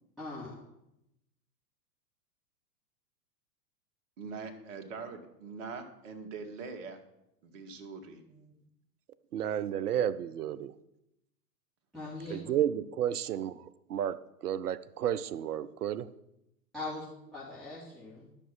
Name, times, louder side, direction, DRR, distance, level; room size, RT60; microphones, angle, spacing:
voice 1, 0.2-0.5 11.9-12.4 16.7-17.1 17.3-18.2, left 2 dB, ahead, -10 dB, 3.3 m, -40 dB
voice 2, 4.2-7.0 7.4-8.5, right 4 dB, 50° right, 6 dB, 1.8 m, -43 dB
voice 3, 9.3-10.7 12.3-13.6 13.9-14.2 14.4-16.1, right 10 dB, 70° right, 16 dB, 0.8 m, -31 dB
12.0 x 6.2 x 5.9 m, 0.84 s
figure-of-eight pair, 105°, 48 cm